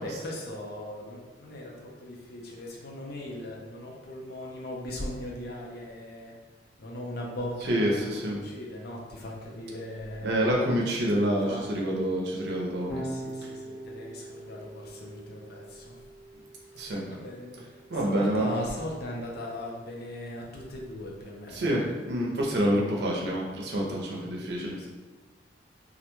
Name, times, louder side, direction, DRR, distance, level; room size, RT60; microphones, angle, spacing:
voice 1, 0.0-6.4 6.8-10.3 11.5-11.6 12.9-16.0 16.6-17.7 18.0-21.9 24.2-24.3 24.7-24.9, left 1 dB, 60° left, -1 dB, 0.5 m, -39 dB
voice 2, 7.7-8.4 10.2-13.0 16.7-17.1 17.9-18.5 21.5-24.7, right 1 dB, 65° right, -2 dB, 0.5 m, -27 dB
Electric guitar / Bass guitar, 12.9-19.3, right 1 dB, 10° left, 0.5 m, -43 dB
2.4 x 2.2 x 2.9 m, 1.3 s
head